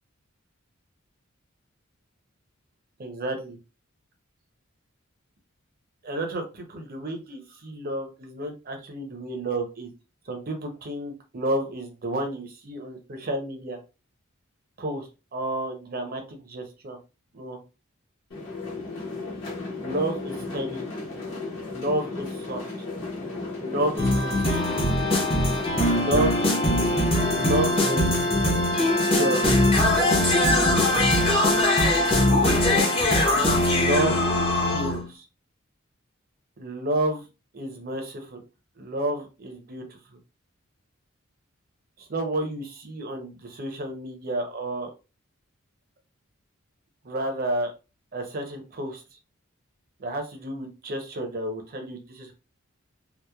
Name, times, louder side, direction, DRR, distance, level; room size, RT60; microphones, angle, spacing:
voice 1, 3.0-3.6 6.0-9.9 10.3-13.8 14.8-17.0 17.3-17.6 19.8-20.9 21.7-22.7 23.6-24.8 25.9-26.4 27.3-28.1 29.0-29.6 32.3-33.1 33.7-34.3 34.6-35.2 36.6-37.2 37.5-38.4 38.8-40.2 42.0-44.9 47.0-47.7 48.1-49.0 50.0-52.3, right 1 dB, 45° right, 5 dB, 0.6 m, -31 dB
sound 1, 18.3-31.0, left 3 dB, 60° left, 1.0 m, -34 dB
sound 2, 24.0-35.1, left 1 dB, 25° left, 0.7 m, -21 dB
2.9 x 2.0 x 2.2 m, 0.30 s
head